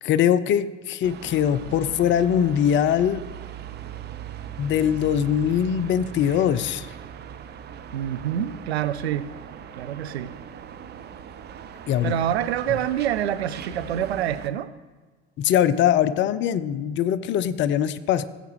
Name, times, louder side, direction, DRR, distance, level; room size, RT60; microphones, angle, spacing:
voice 1, 0.0-3.2 4.6-6.9 11.9-12.1 15.4-18.2, left 9 dB, 35° left, 0.5 m, -22 dB
sound 1, 1.0-14.5, right 8 dB, 30° right, 0.7 m, -40 dB
voice 2, 7.9-9.3 9.8-10.3 12.0-14.7, right 10 dB, 70° right, 0.6 m, -26 dB
17.5 x 8.2 x 3.1 m
figure-of-eight pair, 65°, 33 cm